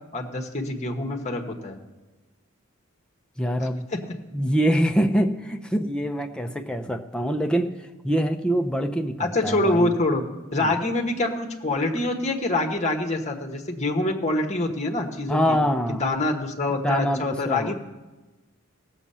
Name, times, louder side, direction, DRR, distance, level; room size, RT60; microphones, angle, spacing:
voice 1, 0.1-1.8 3.6-4.0 9.2-10.2 10.5-15.6 16.0-17.7, left 2 dB, 30° left, 3 dB, 1.2 m, -25 dB
voice 2, 3.4-3.9 4.3-9.9 10.6-10.8 15.3-16.1 16.7-17.7, equal, 5° left, 4 dB, 0.6 m, -25 dB
17.0 x 7.4 x 5.6 m, 1.2 s
head